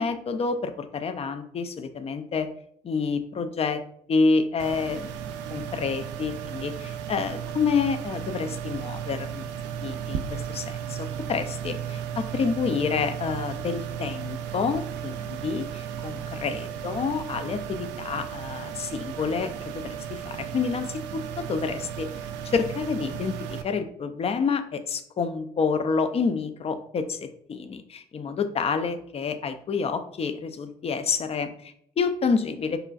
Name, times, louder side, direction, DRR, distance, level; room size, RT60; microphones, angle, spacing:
voice 1, 0.0-2.5 2.8-3.8 4.1-5.1 5.5-9.5 9.8-22.1 22.4-32.8, left 5 dB, 30° left, 10 dB, 0.4 m, -28 dB
sound 1, 4.6-23.6, right 8 dB, 60° right, 0.4 m, -35 dB
4.4 x 3.2 x 2.4 m, 0.69 s
hypercardioid pair, 50°, 21 cm